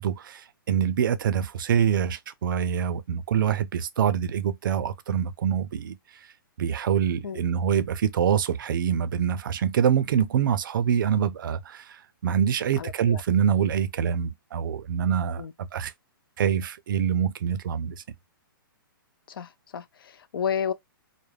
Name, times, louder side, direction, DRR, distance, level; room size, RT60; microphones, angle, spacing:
voice 1, 0.0-6.0 6.6-15.9 16.4-17.9, right 8 dB, 65° right, 0.4 m, -25 dB
voice 2, 12.8-13.2 15.4-15.5 19.3-20.7, left 8 dB, 80° left, 0.5 m, -32 dB
2.3 x 2.0 x 3.2 m
hypercardioid pair, 165°, 12 cm